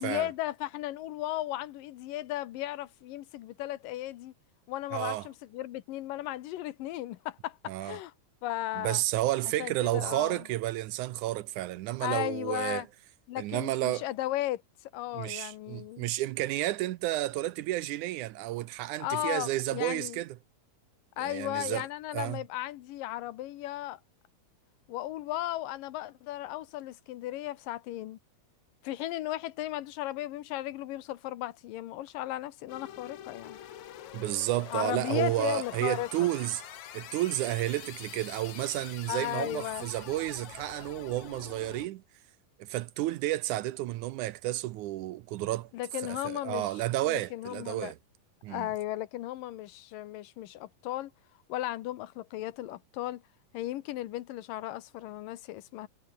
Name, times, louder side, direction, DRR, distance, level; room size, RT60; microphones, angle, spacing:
voice 1, 0.0-4.3 4.7-8.1 8.4-9.0 9.6-10.4 12.0-12.9 13.3-14.6 14.9-16.1 19.0-20.2 21.2-24.0 24.9-28.2 28.8-33.6 34.7-36.3 39.1-39.9 45.7-47.9 48.5-51.1 51.5-53.2 53.5-55.9, left 15 dB, 85° left, 2.7 m, -35 dB
voice 2, 4.9-5.3 7.7-8.0 8.8-12.8 13.4-14.0 15.1-20.4 21.2-21.9 22.1-22.4 34.1-36.6 36.9-42.0 42.6-45.7 46.0-48.0 48.4-48.7, right 15 dB, 75° right, 2.0 m, -31 dB
sound 1, 32.7-41.9, left 11 dB, 65° left, 2.7 m, -46 dB
omnidirectional pair, 3.8 m